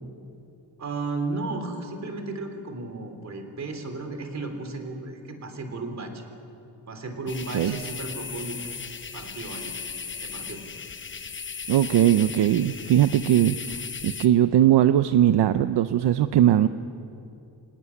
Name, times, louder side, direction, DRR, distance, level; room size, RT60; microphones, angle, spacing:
voice 1, 0.8-6.2 6.9-8.6 9.1-9.8 10.2-10.6, right 3 dB, 40° right, 6 dB, 3.5 m, -34 dB
sound 1, 7.3-14.3, left 6 dB, 30° left, 0.9 m, -37 dB
voice 2, 11.7-13.6 14.0-16.7, right 11 dB, 70° right, 11 dB, 0.7 m, -19 dB
26.5 x 17.5 x 9.8 m, 2.7 s
wide cardioid pair, 165°, 42 cm